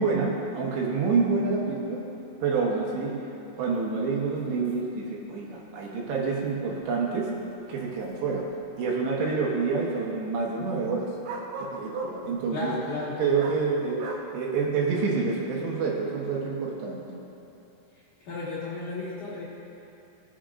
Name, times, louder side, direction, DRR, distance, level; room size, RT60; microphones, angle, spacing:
voice 1, 0.0-2.0 2.4-3.2 3.6-7.3 7.7-8.5 8.8-11.1 11.6-12.8 13.2-14.1 14.3-17.0, right 4 dB, 75° right, -3 dB, 3.0 m, -27 dB
sound 1, 3.8-3.9 4.4-4.5 4.6-4.8 5.8-5.9 6.7-6.8 7.5-8.5 11.2-12.2 13.3-13.6 14.0-14.2, right 3 dB, 90° right, 3.5 m, -37 dB
voice 2, 12.5-13.1 18.2-19.5, left 3 dB, 55° left, -10 dB, 2.4 m, -33 dB
20.5 x 7.3 x 2.5 m, 2.7 s
omnidirectional pair, 5.4 m